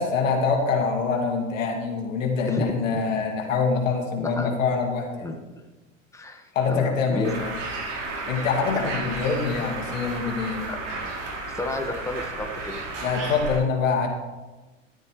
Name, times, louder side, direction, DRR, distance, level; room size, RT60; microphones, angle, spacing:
voice 1, 0.0-5.3 6.5-7.5 8.3-10.7 13.0-14.1, left 5 dB, 85° left, 2 dB, 2.4 m, -25 dB
voice 2, 2.4-3.0 4.2-4.5 5.2-5.6 6.1-7.3 10.7-10.8 11.5-12.8, left 2 dB, 10° left, 3 dB, 1.6 m, -32 dB
Bird, 7.2-13.6, right 3 dB, 70° right, 4.4 m, -33 dB
14.5 x 12.5 x 3.3 m, 1.2 s
hypercardioid pair, 85°, 38 cm